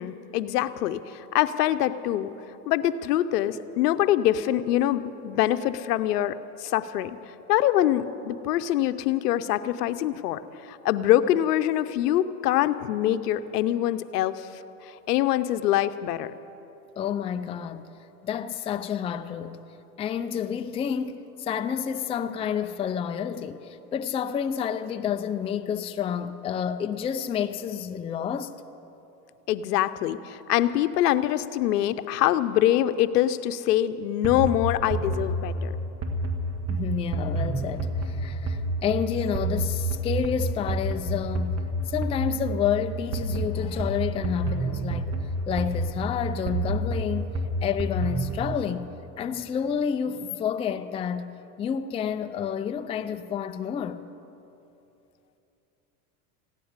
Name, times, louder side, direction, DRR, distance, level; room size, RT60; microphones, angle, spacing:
voice 1, 0.0-2.3 2.7-7.2 7.5-14.5 14.8-16.3 29.5-35.8, left 12 dB, 85° left, 0.8 m, -24 dB
voice 2, 17.0-17.8 18.2-19.6 20.0-28.6 36.7-41.6 41.9-45.1 45.5-47.3 47.6-48.9 49.2-51.3 51.6-54.0, left 8 dB, 15° left, 0.3 m, -29 dB
sound 1, 34.2-48.5, right 1 dB, 30° right, 1.7 m, -29 dB
15.5 x 10.5 x 8.1 m
hypercardioid pair, 100°, 46 cm